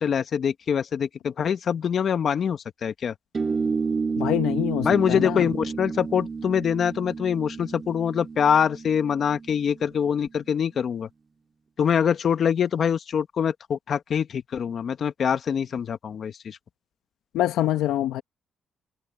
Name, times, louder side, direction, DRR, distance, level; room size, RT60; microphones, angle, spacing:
voice 1, 0.0-3.1 4.8-11.1 11.8-16.6, left 7 dB, 55° left, 1.6 m, -24 dB
sound 1, 3.3-10.3, right 4 dB, 35° right, 3.6 m, -31 dB
voice 2, 4.2-5.4 17.3-18.2, left 13 dB, 90° left, 1.2 m, -25 dB
cardioid pair, 90°, 0 cm